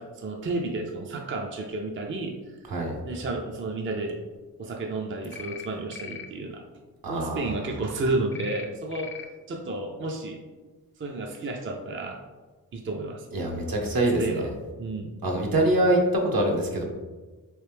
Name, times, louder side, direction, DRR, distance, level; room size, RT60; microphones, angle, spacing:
voice 1, 0.0-2.3 3.0-4.2 4.6-6.6 7.1-9.1 9.5-10.4 11.0-12.2 12.7-13.3 14.2-14.5 14.8-15.1, right 2 dB, 30° right, 2 dB, 0.5 m, -31 dB
sound 1, 5.3-5.7 5.9-6.3 8.3-8.6 8.9-9.2, left 6 dB, 30° left, 0.4 m, -39 dB
voice 2, 7.0-7.5 13.3-14.5 15.2-16.8, right 1 dB, 60° right, 1 dB, 0.9 m, -24 dB
3.1 x 2.6 x 3.3 m, 1.3 s
supercardioid pair, 45°, 40 cm